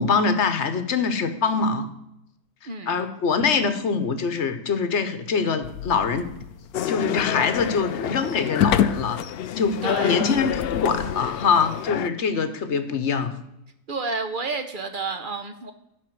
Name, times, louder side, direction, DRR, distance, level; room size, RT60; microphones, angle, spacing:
voice 1, 0.0-1.9 2.9-6.3 6.9-9.2 9.6-9.8 10.0-13.3, left 5 dB, 55° left, 10 dB, 1.2 m, -24 dB
voice 2, 2.7-3.0 9.8-10.2 13.9-15.7, right 3 dB, 40° right, 7 dB, 0.9 m, -30 dB
sound 1, 5.6-11.9, left 9 dB, 90° left, 1.1 m, -30 dB
sound 2, 6.7-12.1, left 10 dB, 75° left, 0.5 m, -29 dB
11.0 x 4.2 x 7.6 m, 0.84 s
omnidirectional pair, 1.5 m